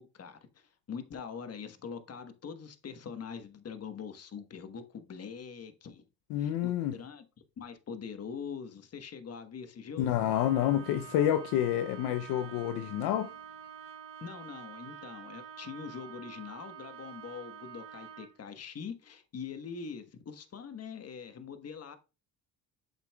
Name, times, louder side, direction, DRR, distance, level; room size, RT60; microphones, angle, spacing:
voice 1, 0.0-6.0 6.4-7.2 7.6-10.1 14.2-22.0, left 6 dB, 40° left, 1.2 m, -43 dB
voice 2, 6.3-6.9 10.0-13.3, left 11 dB, 75° left, 0.7 m, -28 dB
Trumpet, 10.2-18.3, right 9 dB, 70° right, 4.0 m, -47 dB
8.0 x 7.1 x 2.3 m
supercardioid pair, 75°, 38 cm